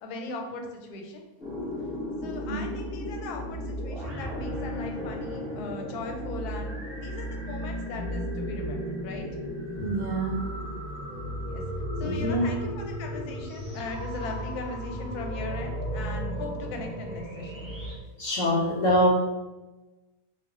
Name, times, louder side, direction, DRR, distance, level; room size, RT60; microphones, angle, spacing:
voice 1, 0.0-1.2 2.2-9.3 11.5-11.6 12.0-17.7, left 2 dB, 90° left, 3 dB, 1.1 m, -39 dB
sound 1, 1.4-17.9, equal, ahead, 0.9 m, -34 dB
voice 2, 2.2-2.6 9.8-10.4 12.0-12.4 18.2-19.1, equal, 70° left, -4 dB, 0.9 m, -25 dB
2.4 x 2.3 x 3.5 m, 1.1 s
omnidirectional pair, 1.6 m